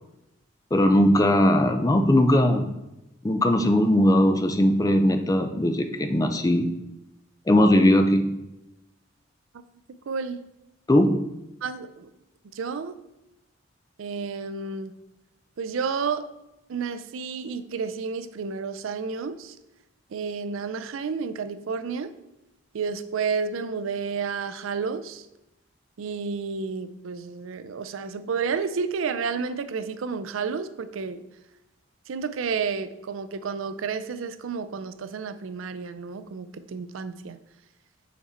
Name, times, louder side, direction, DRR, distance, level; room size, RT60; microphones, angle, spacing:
voice 1, 0.7-2.7 3.2-6.7 7.5-8.3 10.9-11.2, left 1 dB, 20° left, 7 dB, 0.4 m, -19 dB
voice 2, 10.1-10.4 11.6-12.1 12.5-13.0 14.0-14.9 15.6-16.3 16.7-19.6 20.1-22.1 22.7-25.3 26.0-31.2 32.1-37.4, right 5 dB, 80° right, 13 dB, 0.4 m, -31 dB
5.9 x 4.2 x 4.4 m, 0.93 s
head